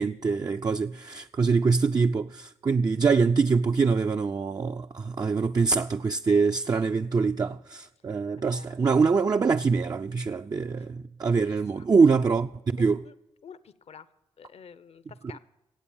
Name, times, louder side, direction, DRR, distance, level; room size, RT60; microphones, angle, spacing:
voice 1, 0.0-13.0, right 4 dB, 35° right, 0.4 m, -24 dB
voice 2, 11.2-11.9 12.8-13.1 13.4-14.1 14.4-15.4, left 7 dB, 60° left, 0.7 m, -49 dB
15.5 x 8.3 x 7.0 m
cardioid pair, 55°, 12 cm